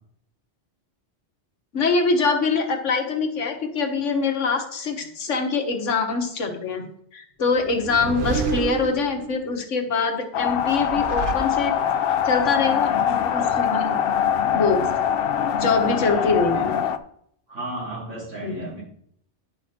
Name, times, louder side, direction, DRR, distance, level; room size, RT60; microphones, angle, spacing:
voice 1, 1.7-6.9 7.1-11.8 12.2-14.0 14.5-14.8 15.5-16.8 18.4-18.6, left 4 dB, 90° left, 4 dB, 1.7 m, -24 dB
sound 1, 7.5-9.5 10.6-12.1, right 5 dB, 50° right, 1.0 m, -30 dB
voice 2, 8.0-8.5 15.8-16.7 17.5-18.8, right 2 dB, 85° right, -6 dB, 4.2 m, -35 dB
sound 2, 10.3-17.0, left 8 dB, 60° left, 0.7 m, -23 dB
10.5 x 6.0 x 4.3 m, 0.67 s
omnidirectional pair, 1.2 m